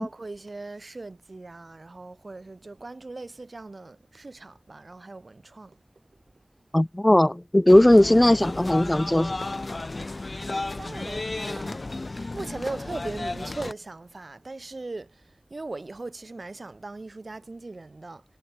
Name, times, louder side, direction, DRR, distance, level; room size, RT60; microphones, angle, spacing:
voice 1, 0.0-5.8 6.1-6.2 10.4-11.8 12.3-18.2, right 3 dB, 80° right, 7.8 m, -39 dB
voice 2, 6.7-9.4, left 1 dB, 25° left, 1.5 m, -18 dB
sound 1, 7.7-13.7, left 2 dB, 70° left, 1.1 m, -33 dB
wide cardioid pair, 45°, 0 cm